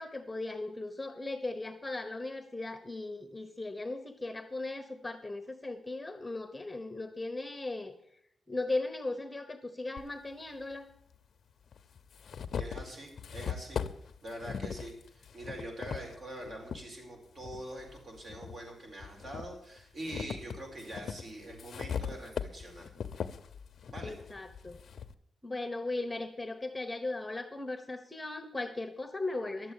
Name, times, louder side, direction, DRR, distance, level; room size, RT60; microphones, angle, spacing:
voice 1, 0.0-7.9 8.5-10.9 24.0-24.8 25.4-29.7, left 2 dB, 15° left, 7 dB, 1.0 m, -37 dB
sound 1, 10.0-10.1 11.1-11.2 11.7-16.8 17.4-18.6 19.0-25.1, left 7 dB, 65° left, 0.6 m, -40 dB
voice 2, 12.6-13.8 14.2-22.9 23.9-24.1, right 1 dB, 50° right, 1 dB, 4.5 m, -44 dB
11.5 x 7.8 x 8.5 m, 0.71 s
wide cardioid pair, 120°, 0 cm